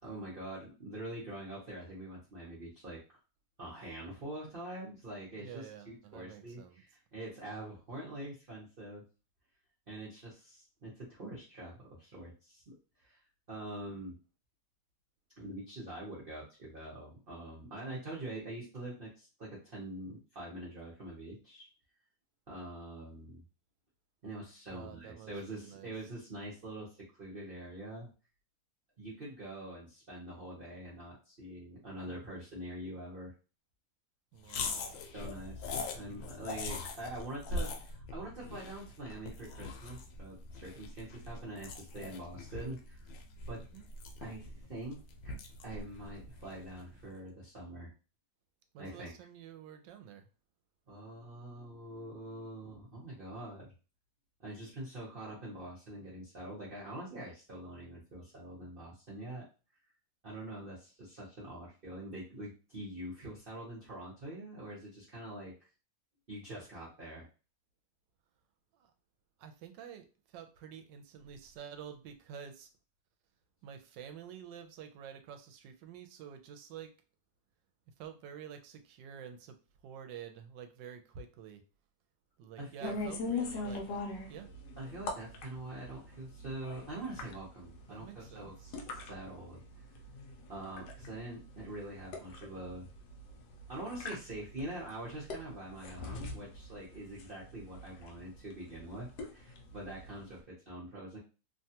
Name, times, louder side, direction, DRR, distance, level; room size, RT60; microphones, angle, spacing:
voice 1, 0.0-3.0 3.6-9.0 9.9-12.8 13.0-13.2 13.5-14.2 15.4-21.7 22.5-23.4 24.2-26.9 27.2-28.1 29.0-33.3 34.4-43.1 43.5-43.6 44.2-45.0 45.6-47.9 48.8-49.1 50.9-53.7 54.4-59.5 60.2-65.5 66.3-67.3 82.6-83.1 84.8-89.6 90.5-92.9 93.7-101.2, right 1 dB, 40° right, -6 dB, 0.8 m, -44 dB
voice 2, 5.3-6.8 24.7-25.9 34.3-35.0 43.6-43.9 48.7-50.3 68.8-68.9 69.4-70.1 70.3-72.7 73.6-76.9 78.0-79.6 79.8-81.6 82.4-84.0 84.3-84.5 87.9-88.7, right 8 dB, 80° right, 7 dB, 1.2 m, -49 dB
sound 1, 34.5-46.9, left 3 dB, 90° left, 1.3 m, -42 dB
sound 2, 82.8-100.4, left 3 dB, 70° left, 1.1 m, -43 dB
3.1 x 2.3 x 2.8 m, 0.33 s
omnidirectional pair, 2.0 m